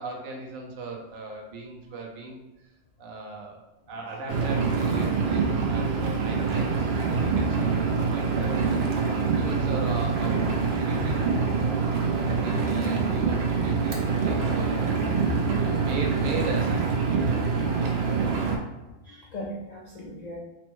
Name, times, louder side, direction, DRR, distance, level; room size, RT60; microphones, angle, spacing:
voice 1, 0.0-2.4 3.0-3.6 3.9-8.7 9.0-11.3 11.6-18.2, right 3 dB, 80° right, 0 dB, 1.1 m, -38 dB
Engine, 4.3-18.6, right 5 dB, 60° right, 0.7 m, -25 dB
voice 2, 15.4-15.7 19.0-20.4, equal, 65° left, -4 dB, 0.4 m, -38 dB
4.2 x 2.2 x 3.0 m, 1.0 s
omnidirectional pair, 1.4 m